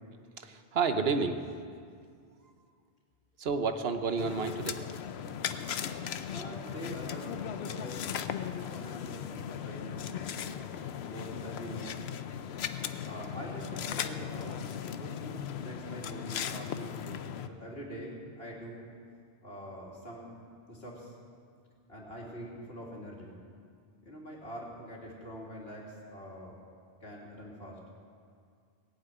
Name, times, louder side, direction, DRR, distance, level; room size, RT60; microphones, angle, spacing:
voice 1, 0.4-1.4 3.4-4.8, right 5 dB, 75° right, 7 dB, 1.1 m, -30 dB
sound 1, 4.2-17.5, left 8 dB, 90° left, 0.9 m, -37 dB
voice 2, 6.3-10.3 11.0-12.0 13.0-18.8 19.4-20.3 20.7-21.1 21.9-23.4 24.0-26.6 27.0-27.8, equal, 75° left, -3 dB, 3.1 m, -44 dB
18.0 x 7.9 x 9.1 m, 2.2 s
omnidirectional pair, 1.0 m